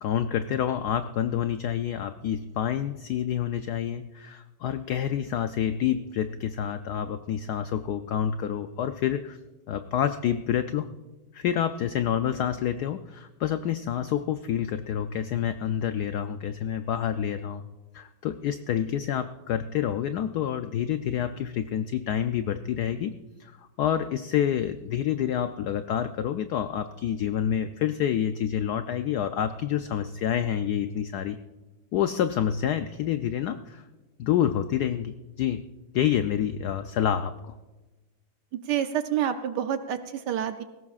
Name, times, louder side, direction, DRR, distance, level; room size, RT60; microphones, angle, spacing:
voice 1, 0.0-9.4 9.7-10.9 11.3-17.6 17.9-23.1 23.4-31.4 31.9-33.8 34.2-35.7 35.9-37.5, left 9 dB, 85° left, 10 dB, 0.8 m, -28 dB
voice 2, 38.7-40.6, right 10 dB, 70° right, 9 dB, 1.0 m, -28 dB
19.5 x 17.0 x 2.4 m, 1.1 s
omnidirectional pair, 2.2 m